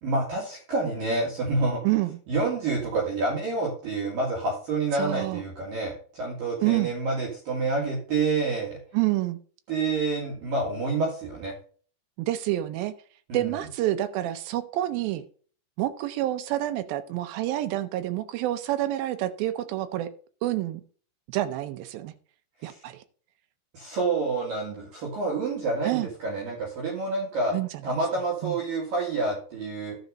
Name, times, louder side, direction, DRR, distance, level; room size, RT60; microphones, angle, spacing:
voice 1, 0.0-1.8 2.3-8.8 9.7-11.5 13.3-13.5 22.6-22.8 23.7-27.6 27.8-30.0, right 3 dB, 55° right, -2 dB, 3.5 m, -28 dB
voice 2, 1.8-2.2 4.9-5.4 6.6-6.9 8.9-9.4 12.2-12.9 13.3-15.2 15.8-20.1 20.4-20.8 21.3-22.1 22.6-23.0 25.8-26.1 27.5-28.0 28.4-28.6, right 15 dB, 80° right, 9 dB, 2.1 m, -28 dB
12.5 x 4.9 x 5.2 m, 0.42 s
omnidirectional pair, 5.1 m